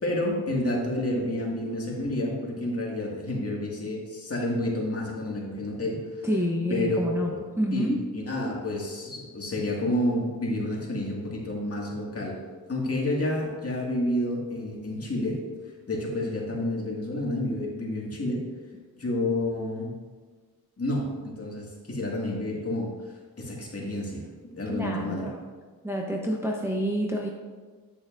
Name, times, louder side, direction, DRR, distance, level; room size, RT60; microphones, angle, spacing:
voice 1, 0.0-6.3 6.7-7.4 7.7-12.4 12.7-15.4 15.9-18.5 19.0-19.9 20.8-22.9 23.4-25.3, left 1 dB, 40° left, -2 dB, 2.0 m, -29 dB
voice 2, 6.2-7.3 7.6-8.0 24.7-25.4 25.8-27.3, equal, 5° right, -1 dB, 0.8 m, -28 dB
8.9 x 8.2 x 2.6 m, 1.4 s
cardioid pair, 75°, 37 cm